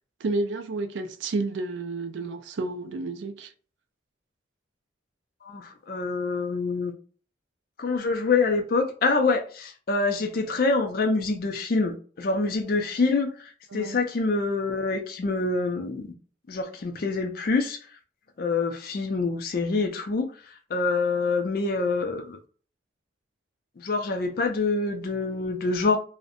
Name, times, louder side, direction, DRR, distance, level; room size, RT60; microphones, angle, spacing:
voice 1, 0.2-3.5 13.7-14.0, right 3 dB, 75° right, 0.4 m, -30 dB
voice 2, 5.5-6.9 7.8-16.1 16.5-17.8 18.4-20.3 20.7-22.4 23.8-26.0, left 3 dB, 50° left, 0.4 m, -26 dB
2.5 x 2.1 x 2.6 m
head